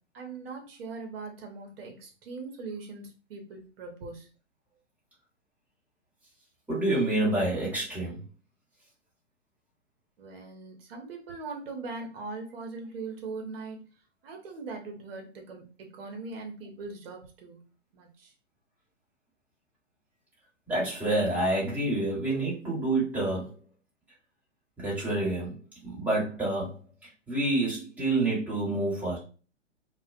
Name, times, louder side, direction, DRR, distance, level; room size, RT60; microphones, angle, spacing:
voice 1, 0.1-4.3 10.2-13.8 14.2-17.6 17.9-18.3, right 3 dB, 50° right, 3 dB, 0.8 m, -40 dB
voice 2, 6.7-8.2 20.7-23.6 24.8-25.6 25.8-26.8 27.3-29.2, right 2 dB, 5° right, -7 dB, 1.2 m, -28 dB
2.3 x 2.2 x 2.5 m, 0.36 s
figure-of-eight pair, 115°, 37 cm